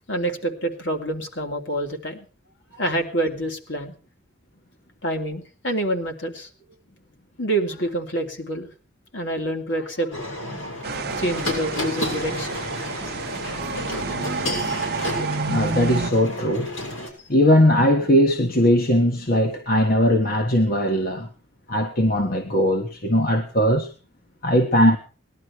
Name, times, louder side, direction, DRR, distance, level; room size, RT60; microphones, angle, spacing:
voice 1, 0.1-2.3 2.7-3.9 5.0-6.5 7.4-8.7 9.1-10.2 11.2-12.6, right 1 dB, 65° left, 3.3 m, -27 dB
sound 1, 10.1-17.1, left 1 dB, 85° left, 6.8 m, -31 dB
sound 2, 10.8-16.1, right 4 dB, 50° right, 0.8 m, -29 dB
voice 2, 15.5-16.7 17.3-21.3 21.7-23.9 24.4-25.0, equal, 45° left, 1.5 m, -19 dB
20.0 x 12.0 x 4.7 m
head